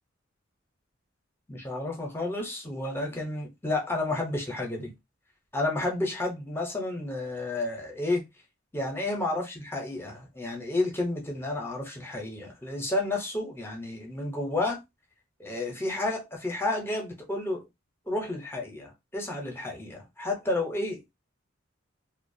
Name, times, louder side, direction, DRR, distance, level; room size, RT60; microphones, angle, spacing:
voice 1, 1.5-4.9 5.5-8.2 8.7-14.8 15.4-17.6 18.1-21.1, left 2 dB, 10° left, 0.6 m, -31 dB
2.3 x 2.1 x 2.6 m
head